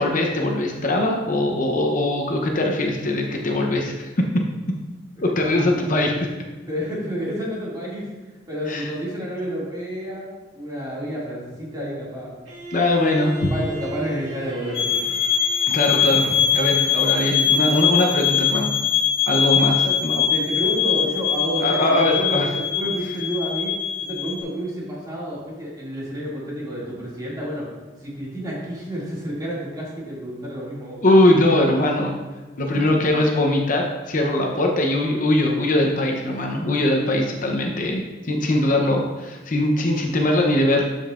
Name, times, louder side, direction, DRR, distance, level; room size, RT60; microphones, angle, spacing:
voice 1, 0.0-4.1 5.2-6.1 8.7-8.9 12.7-13.5 15.7-18.7 19.3-20.3 21.6-22.5 31.0-32.1 32.6-40.8, left 1 dB, 45° left, 1 dB, 0.8 m, -21 dB
voice 2, 6.7-8.1 8.5-12.4 13.5-15.0 19.8-27.7 28.0-31.0 32.7-32.8 33.1-33.2, equal, 20° right, -6 dB, 2.3 m, -30 dB
Bowed string instrument, 12.4-17.4, right 2 dB, 80° right, 2.2 m, -37 dB
sound 1, 14.7-24.4, left 8 dB, 70° left, 1.5 m, -22 dB
12.5 x 5.3 x 2.5 m, 1.3 s
head